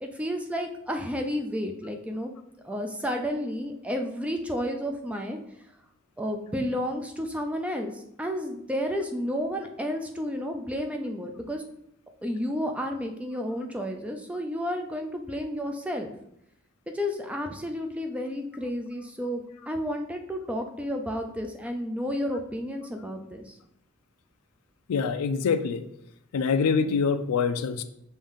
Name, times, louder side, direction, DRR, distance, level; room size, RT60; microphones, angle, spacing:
voice 1, 0.0-2.3 2.6-5.4 6.2-11.6 12.2-16.1 16.9-23.6, equal, 5° right, 4 dB, 0.3 m, -31 dB
voice 2, 24.9-25.8 26.3-27.8, left 5 dB, 85° left, 11 dB, 0.4 m, -25 dB
5.1 x 2.7 x 3.6 m, 0.77 s
head